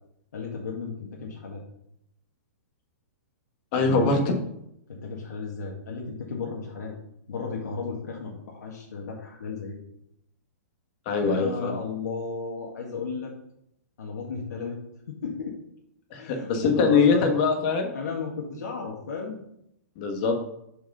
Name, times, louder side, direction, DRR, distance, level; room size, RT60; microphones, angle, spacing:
voice 1, 0.3-1.6 3.8-4.1 4.9-7.0 7.3-9.8 11.2-13.3 14.0-14.8 15.1-15.5 16.2-17.3 17.9-19.4, left 4 dB, 80° left, -1 dB, 1.6 m, -34 dB
voice 2, 3.7-4.4 11.1-11.7 16.1-17.9 20.0-20.3, left 4 dB, 30° left, 4 dB, 1.3 m, -22 dB
6.0 x 4.8 x 5.3 m, 0.79 s
hypercardioid pair, 170°, 9 cm